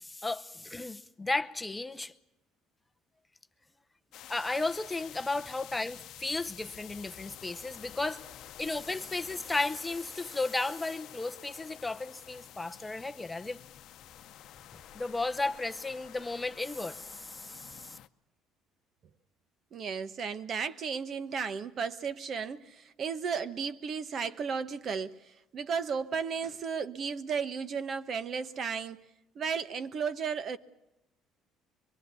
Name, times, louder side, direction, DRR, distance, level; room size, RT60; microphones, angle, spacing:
voice 1, 0.0-2.1 4.3-8.2 8.6-13.6 14.9-18.0, left 2 dB, 10° left, 0.7 m, -34 dB
sound 1, 4.1-18.1, left 12 dB, 65° left, 0.8 m, -49 dB
voice 2, 19.7-29.0 29.3-30.6, right 6 dB, 45° right, 1.0 m, -34 dB
24.0 x 22.5 x 6.9 m
cardioid pair, 125°, 0 cm